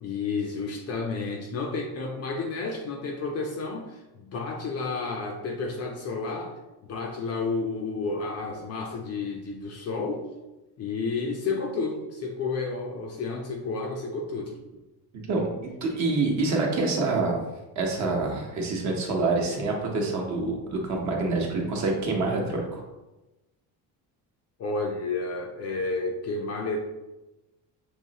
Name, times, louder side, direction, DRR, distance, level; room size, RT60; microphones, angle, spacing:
voice 1, 0.0-6.5 6.8-10.2 10.8-14.6 15.9-16.0 24.6-26.9, left 3 dB, 35° left, 2 dB, 0.4 m, -31 dB
voice 2, 15.3-17.4 17.8-22.8, right 3 dB, 40° right, 0 dB, 1.0 m, -26 dB
6.2 x 3.0 x 2.8 m, 1.0 s
cardioid pair, 165°, 44 cm